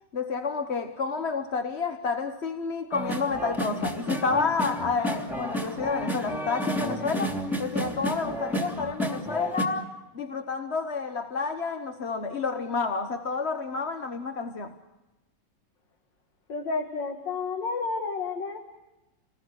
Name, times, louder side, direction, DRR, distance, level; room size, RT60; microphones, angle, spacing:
voice 1, 0.1-14.7, left 4 dB, 40° left, 1.3 m, -30 dB
sound 1, 2.9-9.6, equal, ahead, 2.9 m, -31 dB
voice 2, 16.5-18.6, left 4 dB, 85° left, 2.5 m, -31 dB
29.5 x 20.0 x 6.4 m
omnidirectional pair, 1.9 m